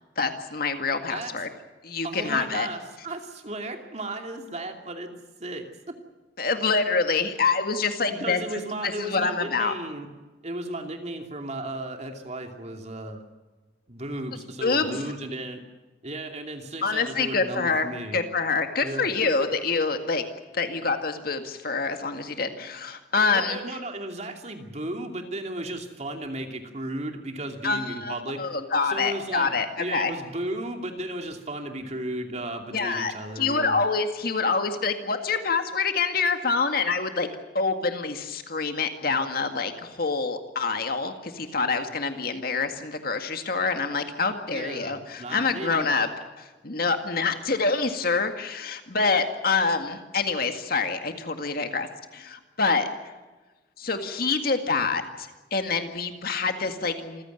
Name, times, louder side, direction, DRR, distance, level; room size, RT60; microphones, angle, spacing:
voice 1, 0.2-1.5 1.8-2.7 6.4-9.7 14.6-15.0 16.8-20.2 20.5-23.6 27.6-30.1 32.7-37.3 37.5-46.1 46.6-51.9 52.1-52.9 53.8-57.2, left 4 dB, 55° left, 6 dB, 2.0 m, -26 dB
voice 2, 2.0-5.1 5.4-5.9 8.1-10.1 10.4-13.2 13.9-15.6 16.0-18.2 18.8-19.3 23.3-28.6 28.8-33.8 44.5-46.1, right 1 dB, 40° right, 4 dB, 2.7 m, -35 dB
27.0 x 16.0 x 9.0 m, 1.2 s
head